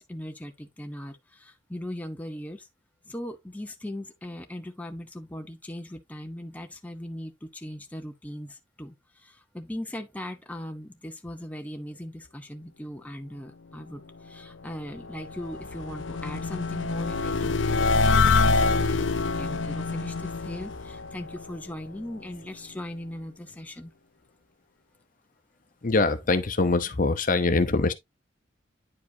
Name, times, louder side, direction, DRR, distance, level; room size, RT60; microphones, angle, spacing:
voice 1, 0.0-2.7 3.1-8.9 9.2-23.9, left 1 dB, 10° left, 0.7 m, -39 dB
sound 1, 14.7-21.9, left 3 dB, 80° left, 0.6 m, -26 dB
voice 2, 25.8-27.9, left 3 dB, 45° left, 0.8 m, -23 dB
9.6 x 4.9 x 2.7 m
head